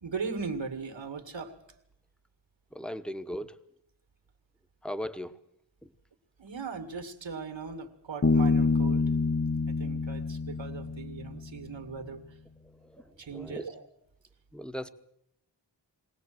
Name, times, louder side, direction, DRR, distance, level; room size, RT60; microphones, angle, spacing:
voice 1, 0.0-1.5 6.4-9.1 9.7-12.2 13.2-13.9, right 5 dB, 85° right, 7 dB, 2.2 m, -38 dB
voice 2, 2.7-3.6 4.8-5.4 5.8-5.9 12.8-13.6 14.5-14.9, equal, ahead, 11 dB, 1.1 m, -38 dB
Bass guitar, 8.2-11.7, left 3 dB, 35° left, 1.0 m, -27 dB
22.0 x 18.0 x 7.8 m, 0.72 s
wide cardioid pair, 70°, 44 cm